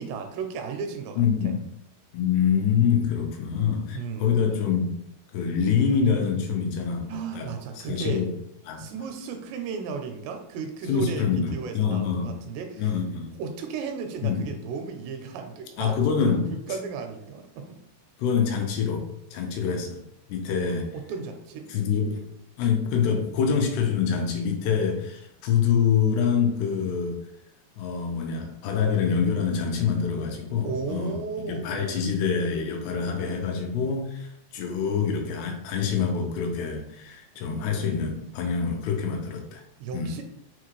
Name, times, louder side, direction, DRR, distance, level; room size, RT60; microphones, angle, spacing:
voice 1, 0.0-1.5 3.9-4.4 7.1-8.3 8.8-12.8 13.4-17.8 20.9-21.6 30.6-31.9 39.8-40.2, right 5 dB, 90° right, 5 dB, 2.8 m, -35 dB
voice 2, 1.2-1.6 2.1-5.0 5.3-7.5 7.8-8.3 8.7-8.9 10.9-12.4 12.8-13.3 14.2-14.4 15.8-16.5 18.2-20.0 20.3-20.9 21.7-22.2 22.6-27.2 27.8-31.2 31.5-39.6 39.9-40.2, left 6 dB, 85° left, 3 dB, 2.7 m, -25 dB
6.5 x 2.4 x 3.1 m, 0.76 s
omnidirectional pair, 4.8 m